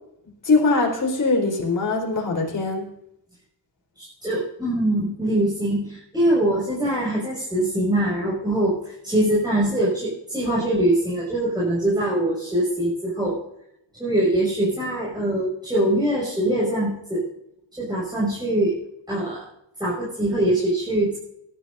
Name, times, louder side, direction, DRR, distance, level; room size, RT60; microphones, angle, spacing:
voice 1, 0.4-2.9, left 3 dB, 45° left, 0 dB, 4.4 m, -21 dB
voice 2, 4.0-13.4 14.0-17.3 17.8-18.8 19.1-19.5 19.8-21.2, right 1 dB, 10° right, -6 dB, 6.2 m, -23 dB
20.0 x 12.0 x 2.7 m, 0.78 s
cardioid pair, 95°, 44 cm